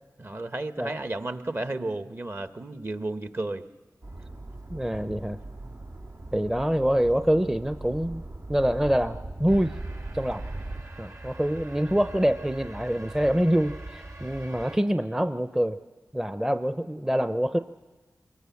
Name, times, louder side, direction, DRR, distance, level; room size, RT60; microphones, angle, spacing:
voice 1, 0.2-3.7, right 2 dB, 40° right, 10 dB, 1.2 m, -33 dB
sound 1, 4.0-10.8, right 2 dB, 75° right, 2.8 m, -39 dB
voice 2, 4.7-5.4 6.3-8.2 8.5-9.7 10.1-10.4 11.0-15.8 16.1-17.6, equal, 10° right, 10 dB, 0.6 m, -25 dB
sound 2, 9.5-14.8, right 2 dB, 55° right, 2.9 m, -42 dB
23.0 x 22.0 x 7.1 m, 1.2 s
cardioid pair, 55°, 6 cm